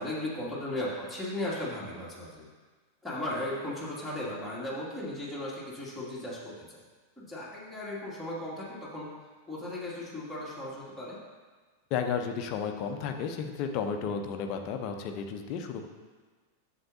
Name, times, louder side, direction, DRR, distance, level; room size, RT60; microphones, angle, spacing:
voice 1, 0.0-2.5 3.0-6.8 7.2-9.1 9.5-11.2 14.0-14.2, left 1 dB, ahead, -9 dB, 2.4 m, -36 dB
voice 2, 11.9-15.9, left 6 dB, 40° left, 5 dB, 0.8 m, -33 dB
11.0 x 7.5 x 2.8 m, 1.4 s
figure-of-eight pair, 90°, 0 cm